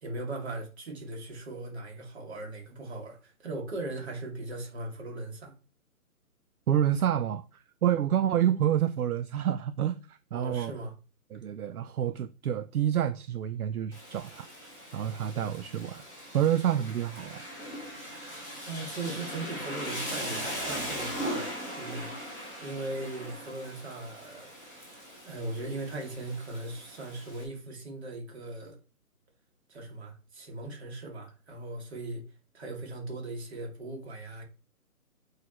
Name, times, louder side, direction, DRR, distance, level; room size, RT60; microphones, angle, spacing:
voice 1, 0.0-5.5 10.3-10.9 18.6-22.1 22.6-24.9 25.2-28.8 29.7-32.2 32.5-34.4, right 2 dB, 45° right, 2.4 m, -39 dB
voice 2, 6.7-7.4 7.8-10.7 11.3-14.5 14.9-16.0 16.3-17.4, right 10 dB, 70° right, 0.6 m, -28 dB
Rain, 13.9-27.4, equal, 5° right, 1.1 m, -39 dB
7.9 x 4.8 x 3.0 m
hypercardioid pair, 165°, 45 cm